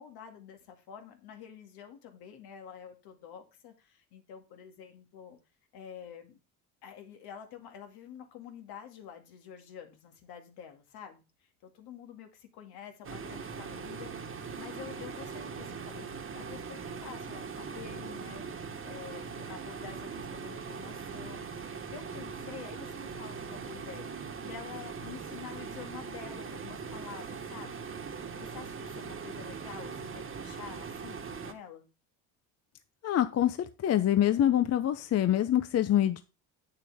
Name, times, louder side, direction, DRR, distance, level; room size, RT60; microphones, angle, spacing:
voice 1, 0.0-5.4 5.7-6.4 6.8-18.5 18.8-27.9 28.4-31.9, left 8 dB, 70° left, 5 dB, 2.1 m, -48 dB
sound 1, 13.0-31.5, right 5 dB, 30° right, 1.4 m, -41 dB
voice 2, 33.0-36.2, left 11 dB, 40° left, 11 dB, 0.7 m, -25 dB
8.5 x 6.6 x 3.5 m, 0.29 s
supercardioid pair, 90°, 40 cm